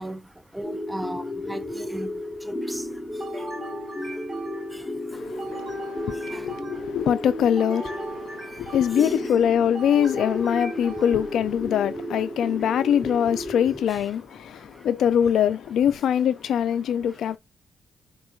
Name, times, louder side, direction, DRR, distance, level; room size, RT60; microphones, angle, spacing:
voice 1, 0.0-7.0 8.1-9.3 10.5-11.0 12.1-12.8 13.0-13.2 13.9-14.9 16.8-17.4, right 1 dB, 5° right, 0.5 m, -42 dB
sound 1, 0.6-13.9, left 1 dB, 15° left, 1.1 m, -33 dB
sound 2, 3.2-4.9 5.4-7.1 7.6-9.2 9.7-11.5, right 4 dB, 40° right, 2.8 m, -40 dB
voice 2, 5.1-17.4, left 9 dB, 80° left, 0.4 m, -23 dB
4.3 x 3.0 x 2.3 m
cardioid pair, 80°, 0 cm